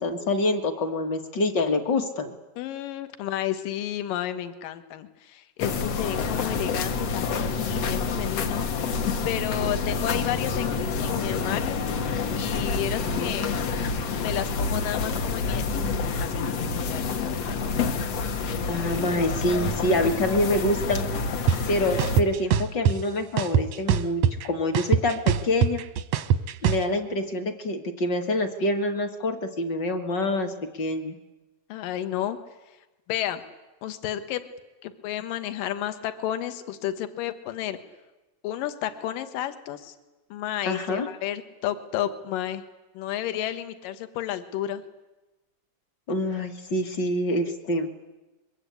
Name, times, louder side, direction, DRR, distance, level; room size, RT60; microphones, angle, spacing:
voice 1, 0.0-2.3 13.0-13.6 18.7-21.1 21.7-25.8 26.6-31.2 40.7-41.1 46.1-47.9, left 1 dB, 40° left, 6 dB, 1.8 m, -26 dB
voice 2, 2.6-8.9 9.2-11.9 12.4-13.6 14.2-17.7 31.7-32.4 33.1-33.4 33.8-34.4 34.8-37.8 38.4-39.9 40.3-42.6 42.9-44.8, left 12 dB, 70° left, 10 dB, 2.9 m, -32 dB
sound 1, 5.6-22.2, left 4 dB, 55° left, 2.1 m, -28 dB
sound 2, 21.5-21.6 22.0-23.0 23.4-24.4 24.7-26.8, right 8 dB, 70° right, 1.6 m, -21 dB
25.0 x 22.5 x 8.5 m, 1.1 s
omnidirectional pair, 4.2 m